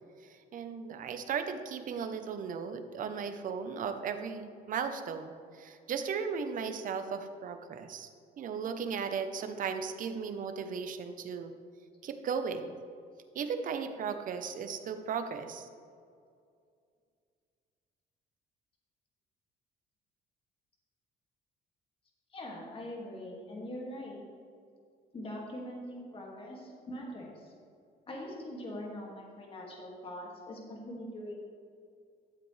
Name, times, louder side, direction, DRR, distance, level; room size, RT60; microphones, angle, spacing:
voice 1, 0.2-8.1 8.4-11.5 12.0-12.8 13.3-15.7, right 6 dB, 55° right, 8 dB, 0.9 m, -36 dB
voice 2, 22.3-24.2 25.1-27.5 28.1-31.4, left 1 dB, 35° left, -2 dB, 2.2 m, -42 dB
12.5 x 7.6 x 3.3 m, 2.3 s
cardioid pair, 110°, 17 cm